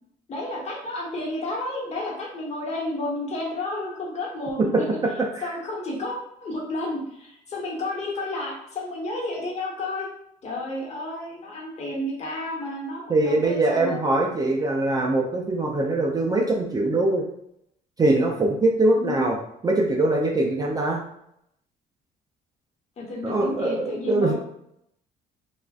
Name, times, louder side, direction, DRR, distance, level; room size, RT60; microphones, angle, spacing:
voice 1, 0.3-4.9 5.4-10.1 10.4-14.0 19.0-19.2 23.0-24.3, left 2 dB, 40° left, -2 dB, 1.1 m, -31 dB
voice 2, 13.1-17.2 18.0-19.4 19.6-21.0 23.2-24.3, right 2 dB, 20° right, 0 dB, 0.4 m, -22 dB
3.4 x 2.4 x 2.4 m, 0.77 s
cardioid pair, 110°, 17 cm